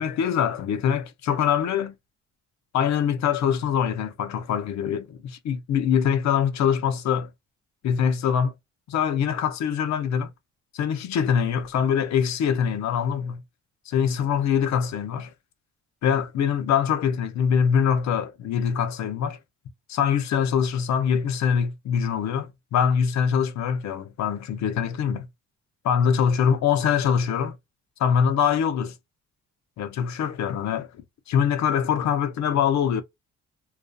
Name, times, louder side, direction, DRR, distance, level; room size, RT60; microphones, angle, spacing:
voice 1, 0.0-2.0 2.7-7.3 7.8-8.5 8.9-10.3 10.7-13.4 13.9-15.3 16.0-19.4 19.9-25.3 25.9-27.5 28.0-28.9 29.8-30.9 31.3-33.0, left 7 dB, 65° left, 0.6 m, -23 dB
2.4 x 2.3 x 2.4 m
cardioid pair, 90°, 30 cm